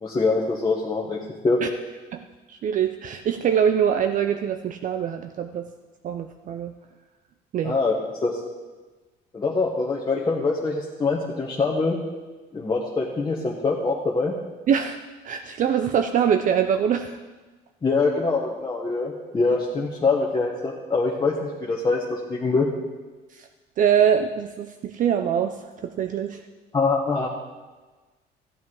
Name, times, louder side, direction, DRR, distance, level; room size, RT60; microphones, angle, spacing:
voice 1, 0.0-1.6 7.6-8.4 9.3-12.0 12.5-14.3 17.8-22.7 26.7-27.3, left 3 dB, 25° left, -3 dB, 1.3 m, -24 dB
voice 2, 2.5-5.7 6.0-6.7 7.5-7.8 14.7-15.0 15.2-17.2 23.3-23.5 23.8-26.4, right 8 dB, 50° right, 7 dB, 0.6 m, -23 dB
14.0 x 8.4 x 4.8 m, 1.3 s
cardioid pair, 125°, 18 cm